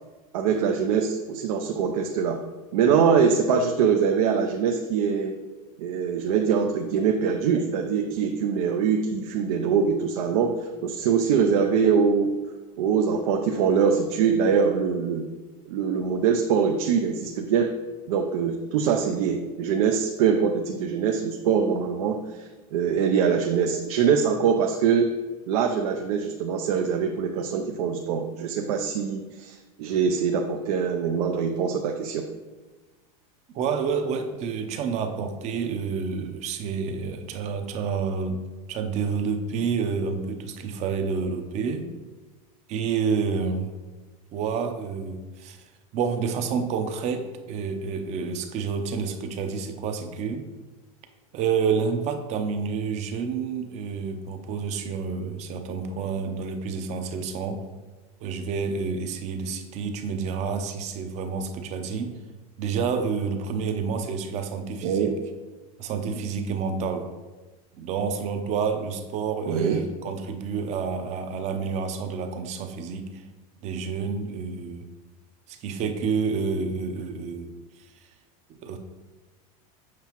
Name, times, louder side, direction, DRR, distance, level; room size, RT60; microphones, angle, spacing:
voice 1, 0.3-2.4 2.7-5.4 5.8-12.3 12.8-15.3 15.7-17.7 18.1-25.1 25.5-32.3 64.8-65.1 69.5-69.8, right 6 dB, 75° right, 3 dB, 0.6 m, -23 dB
voice 2, 33.5-38.4 38.7-41.9 42.7-43.7 44.3-45.6 45.9-50.5 51.3-57.7 58.2-62.2 62.6-65.1 65.8-67.1 67.7-73.2 73.6-74.8 75.5-77.5 78.5-78.8, right 5 dB, 35° right, 7 dB, 0.7 m, -29 dB
7.5 x 5.7 x 3.0 m, 1.2 s
supercardioid pair, 150°, 19 cm